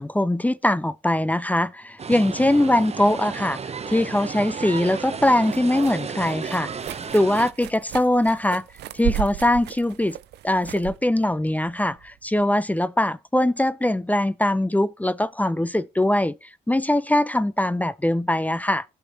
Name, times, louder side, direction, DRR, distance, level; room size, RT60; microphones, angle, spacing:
voice 1, 0.0-3.6 3.9-6.7 7.1-8.6 8.9-10.2 10.4-16.4 16.7-18.8, left 1 dB, 10° left, 0.5 m, -22 dB
sound 1, 2.0-7.5, right 6 dB, 40° right, 0.7 m, -33 dB
sound 2, 5.1-12.5, right 13 dB, 85° right, 0.4 m, -35 dB
15.5 x 5.8 x 2.7 m
supercardioid pair, 60°, 17 cm